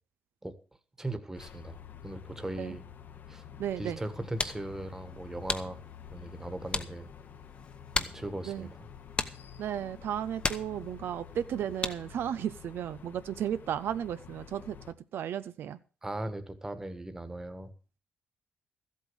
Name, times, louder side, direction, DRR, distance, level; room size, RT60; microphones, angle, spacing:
voice 1, 1.0-2.8 3.3-3.4 3.8-5.8 6.1-7.1 7.9-8.7 16.0-17.7, right 1 dB, 10° right, 10 dB, 1.5 m, -38 dB
sound 1, 1.3-14.9, left 8 dB, 55° left, 1.0 m, -49 dB
voice 2, 3.6-4.0 8.4-8.7 9.6-15.8, right 10 dB, 75° right, 12 dB, 0.6 m, -34 dB
sound 2, 4.0-12.3, left 3 dB, 25° left, 0.9 m, -38 dB
14.0 x 8.4 x 6.2 m, 0.37 s
cardioid pair, 115°, 4 cm